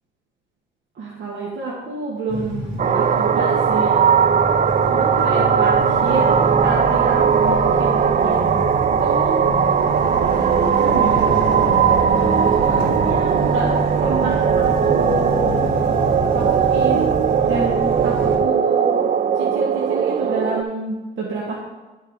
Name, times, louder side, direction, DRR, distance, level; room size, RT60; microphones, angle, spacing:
voice 1, 0.9-3.9 4.9-8.4 9.0-9.4 10.4-11.3 12.6-13.7 14.0-15.6 16.3-17.1 17.5-19.0 19.4-21.6, right 3 dB, 70° right, -4 dB, 1.6 m, -28 dB
sound 1, 2.3-18.4, right 1 dB, 85° right, 2.7 m, -26 dB
sound 2, 2.8-20.6, right 7 dB, 40° right, 0.4 m, -18 dB
10.5 x 4.6 x 4.6 m, 1.2 s
cardioid pair, 90°, 20 cm